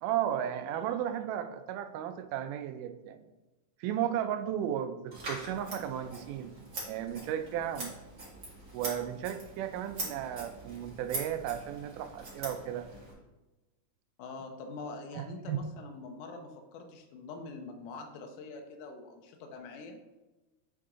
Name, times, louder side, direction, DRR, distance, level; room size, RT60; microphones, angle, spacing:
voice 1, 0.0-3.3 3.8-6.5 6.9-8.0 8.7-12.9 15.1-15.6, right 10 dB, 90° right, 9 dB, 2.1 m, -34 dB
Scissors, 5.1-13.1, right 2 dB, 30° right, 1.6 m, -43 dB
voice 2, 14.2-20.0, left 3 dB, 85° left, 3 dB, 2.2 m, -44 dB
7.7 x 3.7 x 3.6 m, 1.1 s
omnidirectional pair, 3.6 m